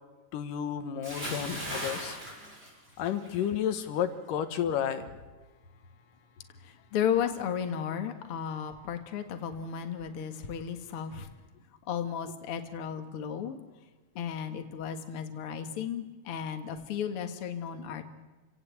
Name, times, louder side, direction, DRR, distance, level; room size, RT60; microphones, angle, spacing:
voice 1, 0.3-2.2 3.0-5.1, left 9 dB, 80° left, 9 dB, 2.9 m, -31 dB
Bathtub (filling or washing) / Splash splatter, 1.0-3.5 3.8-4.1, equal, 15° right, 7.3 m, -38 dB
voice 2, 6.6-11.3 11.9-13.6 14.2-18.0, left 8 dB, 50° left, 6 dB, 2.2 m, -34 dB
29.0 x 17.0 x 8.3 m, 1.2 s
omnidirectional pair, 3.8 m